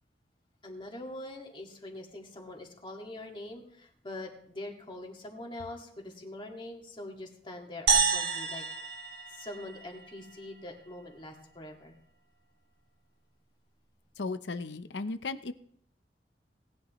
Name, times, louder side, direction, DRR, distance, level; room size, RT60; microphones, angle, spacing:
voice 1, 0.6-8.6 9.3-11.9, left 1 dB, 30° left, 1 dB, 2.0 m, -43 dB
sound 1, 7.9-10.3, right 5 dB, 65° right, 1.4 m, -29 dB
voice 2, 14.2-15.5, left 3 dB, 90° left, 11 dB, 0.7 m, -35 dB
18.5 x 10.5 x 3.1 m, 0.64 s
head